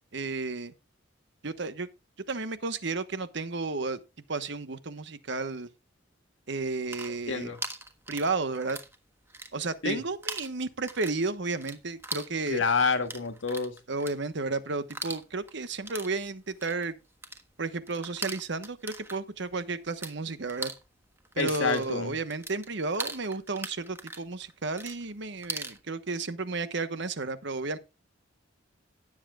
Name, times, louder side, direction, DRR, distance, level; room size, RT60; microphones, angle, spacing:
voice 1, 0.1-0.7 1.4-1.9 2.3-4.0 4.3-5.7 6.5-7.6 8.1-8.8 9.5-12.6 13.9-16.9 17.6-20.7 21.3-27.8, right 3 dB, 65° right, 1.2 m, -32 dB
sound 1, 6.7-9.0 9.2-9.9 10.2-20.1 20.4-25.8, right 2 dB, 15° right, 1.3 m, -40 dB
voice 2, 7.3-7.6 9.8-10.0 12.5-13.8 21.4-22.1, left 4 dB, 80° left, 1.6 m, -28 dB
18.0 x 7.6 x 2.4 m
head